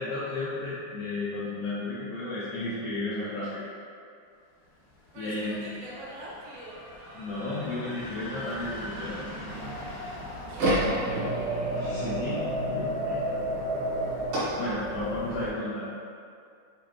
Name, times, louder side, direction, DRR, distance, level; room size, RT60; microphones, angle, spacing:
voice 1, 0.0-3.7 5.2-5.7 7.1-9.2 11.7-13.3 14.6-15.9, left 2 dB, 90° left, -8 dB, 1.8 m, -33 dB
sound 1, 4.6-14.5, left 1 dB, 70° left, 2.0 m, -43 dB
voice 2, 5.1-6.9 10.5-12.2 15.4-15.6, right 1 dB, 80° right, -6 dB, 2.7 m, -43 dB
sound 2, 9.5-15.5, right 1 dB, 65° right, 2.8 m, -30 dB
6.7 x 2.4 x 3.0 m, 2.4 s
omnidirectional pair, 4.4 m